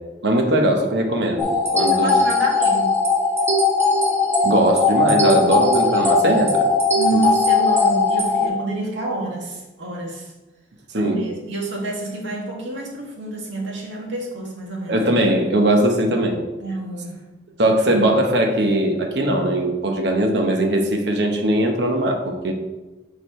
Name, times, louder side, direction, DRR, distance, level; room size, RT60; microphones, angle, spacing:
voice 1, 0.2-2.2 4.4-6.7 10.9-11.2 14.9-16.4 17.6-22.5, right 1 dB, 65° right, 3 dB, 1.0 m, -20 dB
sound 1, 1.4-8.5, left 3 dB, 15° right, 1.2 m, -19 dB
voice 2, 2.0-3.0 6.9-10.3 10.9-15.0 16.6-17.2 19.2-19.4, right 2 dB, 80° right, -1 dB, 1.8 m, -28 dB
6.5 x 4.8 x 4.4 m, 1.1 s
head